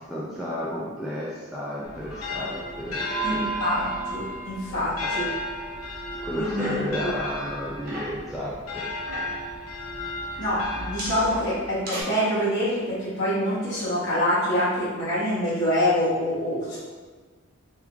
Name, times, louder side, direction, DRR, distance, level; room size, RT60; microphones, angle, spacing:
voice 1, 0.0-3.5 4.7-5.3 6.2-8.8 9.1-9.3 10.0-10.1, equal, ahead, -8 dB, 0.3 m, -33 dB
sound 1, 1.8-11.8, left 1 dB, 85° left, 0.7 m, -33 dB
voice 2, 3.2-5.2 6.4-6.8 10.4-16.8, equal, 50° left, -11 dB, 1.4 m, -25 dB
sound 2, 6.3-7.1 7.4-8.3 8.8-9.5 10.3-12.0, equal, 45° right, 0.7 m, -37 dB
3.5 x 2.4 x 3.0 m, 1.4 s
head